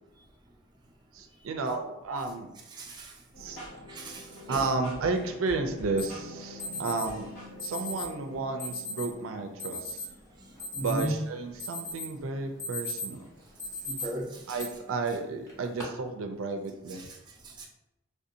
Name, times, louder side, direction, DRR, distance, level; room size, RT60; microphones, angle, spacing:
voice 1, 1.1-2.5 3.4-3.6 4.5-7.3 7.6-10.1 10.8-13.3 14.5-17.0, right 3 dB, 85° right, 5 dB, 0.4 m, -32 dB
voice 2, 2.8-3.1 3.9-4.6 10.7-11.1 13.9-14.3 17.6-17.7, right 1 dB, 20° right, -1 dB, 0.5 m, -35 dB
sound 1, 3.3-10.1, equal, 70° left, 1.4 m, -46 dB
Alarm, 6.0-6.1 6.6-7.1 7.6-8.1 8.6-9.1 9.6-10.1 10.4-11.2 11.6-12.1 12.4-13.2 13.6-14.0 14.6-14.7 15.5-15.8, left 2 dB, 15° left, 0.8 m, -36 dB
3.5 x 2.6 x 2.7 m, 0.91 s
head